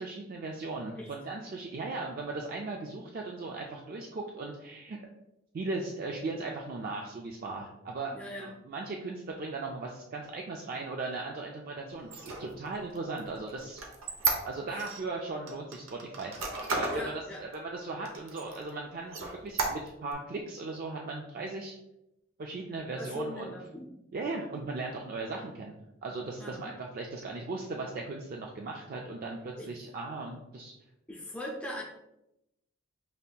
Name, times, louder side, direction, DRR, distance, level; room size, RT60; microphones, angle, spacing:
voice 1, 0.0-5.0 5.5-8.1 8.4-13.8 14.4-16.4 16.7-21.8 22.4-23.5 24.1-30.7, right 3 dB, 45° right, 0 dB, 0.3 m, -38 dB
voice 2, 8.1-8.5 16.9-17.4 22.9-23.9 26.4-26.7 29.6-29.7 31.1-31.8, left 1 dB, 5° left, -3 dB, 0.5 m, -39 dB
Squeak, 12.0-15.0 15.5-17.1 17.5-17.6 18.0-18.7 19.1-20.1, right 4 dB, 75° right, 0.7 m, -33 dB
5.3 x 2.7 x 2.2 m, 0.87 s
head